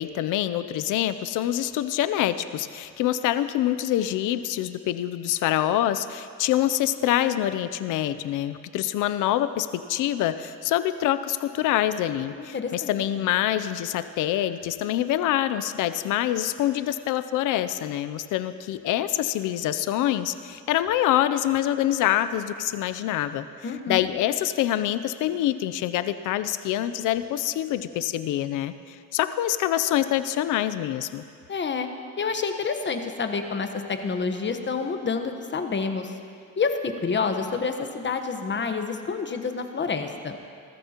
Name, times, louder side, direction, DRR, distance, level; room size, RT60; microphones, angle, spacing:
voice 1, 0.0-23.5 23.9-31.2, left 12 dB, 90° left, 12 dB, 0.6 m, -25 dB
voice 2, 12.4-13.0 23.6-24.0 31.5-31.9 32.2-36.1 36.6-40.4, left 5 dB, 40° left, 6 dB, 1.1 m, -28 dB
20.5 x 13.5 x 2.9 m, 2.3 s
cardioid pair, 90°, 30 cm